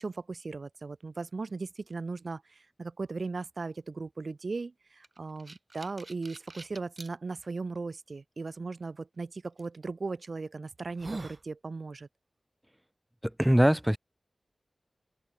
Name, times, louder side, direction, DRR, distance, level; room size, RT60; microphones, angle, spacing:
voice 1, 0.0-12.1, right 3 dB, 60° right, 3.8 m, -37 dB
sound 1, 5.0-7.1 7.8-7.9 9.6-9.8 10.3-10.4 10.8-11.4, right 2 dB, 40° right, 6.4 m, -43 dB
voice 2, 13.4-14.0, equal, 5° right, 0.5 m, -21 dB
wide cardioid pair, 95°, 0 cm